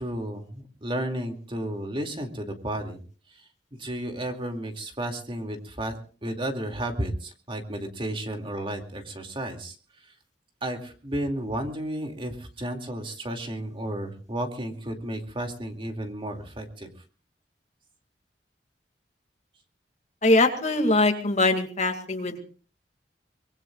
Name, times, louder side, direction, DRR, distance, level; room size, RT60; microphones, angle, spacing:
voice 1, 0.0-3.0 3.3-3.4 3.7-10.1 10.6-16.9, right 1 dB, 30° right, 4 dB, 2.4 m, -33 dB
voice 2, 20.2-22.4, left 2 dB, 40° left, 5 dB, 2.2 m, -22 dB
24.5 x 22.5 x 2.4 m, 0.39 s
head